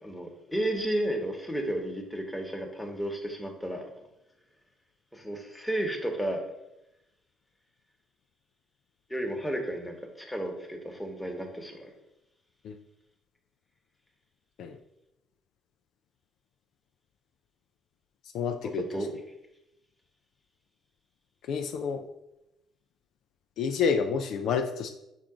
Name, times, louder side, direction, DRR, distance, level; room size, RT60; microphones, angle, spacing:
voice 1, 0.0-3.9 5.1-6.4 9.1-11.9 18.6-19.1, right 1 dB, 10° left, 2 dB, 1.1 m, -33 dB
voice 2, 18.3-18.8 21.4-22.1 23.6-24.9, left 6 dB, 65° left, 6 dB, 0.3 m, -29 dB
5.8 x 2.4 x 3.7 m, 0.89 s
hypercardioid pair, 60°, 0 cm